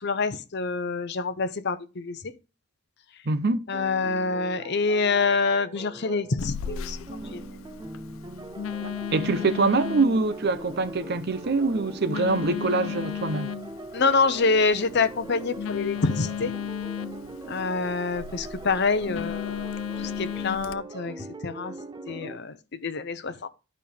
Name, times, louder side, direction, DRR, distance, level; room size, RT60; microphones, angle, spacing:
voice 1, 0.0-2.2 3.7-7.0 7.3-7.4 13.9-16.5 17.5-21.7 22.1-23.5, left 4 dB, 55° left, 0.7 m, -26 dB
voice 2, 3.3-3.7 8.8-13.6, right 3 dB, 55° right, 0.7 m, -24 dB
sound 1, 3.7-22.4, right 2 dB, 20° right, 0.6 m, -41 dB
Telephone, 6.4-20.8, left 8 dB, 80° left, 0.4 m, -36 dB
11.0 x 5.3 x 3.4 m
head